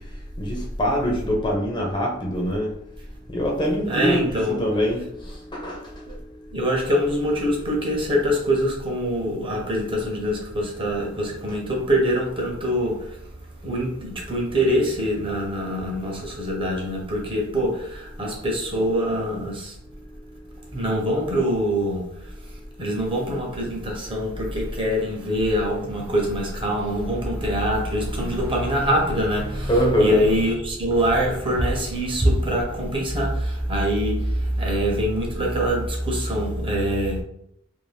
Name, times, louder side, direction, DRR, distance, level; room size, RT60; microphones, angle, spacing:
voice 1, 0.4-2.7 3.3-5.8 29.7-30.2, equal, 25° left, 0.6 m, -23 dB
voice 2, 3.8-4.6 6.1-6.2 6.5-13.3 13.6-19.8 20.7-37.2, equal, 25° right, 0.8 m, -24 dB
2.6 x 2.5 x 3.3 m
head